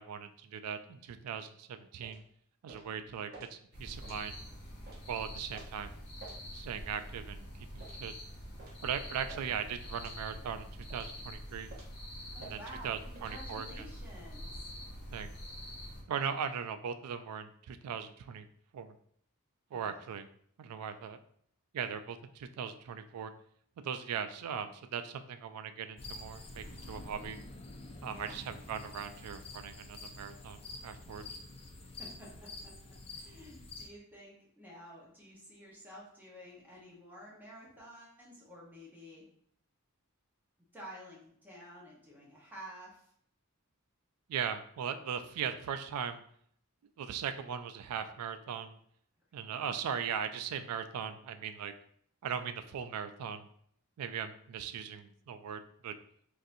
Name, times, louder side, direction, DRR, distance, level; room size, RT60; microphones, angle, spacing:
voice 1, 0.0-2.2 2.6-4.4 5.1-5.9 6.5-8.1 8.8-11.7 12.4-13.9 15.1-15.3 16.1-18.5 18.7-19.0 19.7-20.3 20.6-21.2 21.7-23.3 23.8-27.4 28.0-31.2 44.3-46.2 47.0-48.8 49.3-51.7 52.2-53.5 54.0-55.9, right 7 dB, 85° right, 10 dB, 0.3 m, -39 dB
sound 1, 2.0-2.2 2.7-2.9 3.3-3.5 4.0-4.2 4.9-5.0 5.5-5.7 6.2-6.4 6.9-7.1 7.8-8.0 8.6-8.8 9.3-9.5 10.0-10.2 10.9-11.1 11.7-12.0 12.4-12.6 13.1-13.4, right 3 dB, 45° right, 0.8 m, -51 dB
sound 2, 3.7-16.0, equal, 50° left, 1.1 m, -46 dB
voice 2, 12.3-14.7 19.7-20.0 28.1-28.5 31.8-39.3 40.7-43.1, equal, 10° right, -5 dB, 1.0 m, -51 dB
sound 3, 26.0-33.9, left 2 dB, 25° left, 0.4 m, -48 dB
4.0 x 2.6 x 2.5 m, 0.64 s
head